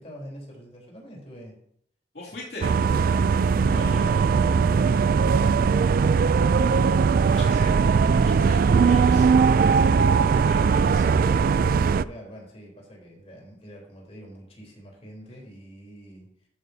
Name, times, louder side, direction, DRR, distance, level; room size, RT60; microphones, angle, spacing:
voice 1, 0.0-1.6 2.3-2.4 11.2-16.5, equal, 35° left, -2 dB, 3.8 m, -45 dB
voice 2, 2.1-2.7 3.7-4.2 7.2-7.9 8.2-9.3 10.2-11.0, left 2 dB, 60° left, -4 dB, 2.6 m, -40 dB
sound 1, 2.6-12.0, right 5 dB, 50° right, 0.3 m, -20 dB
13.0 x 8.7 x 2.8 m, 0.69 s
head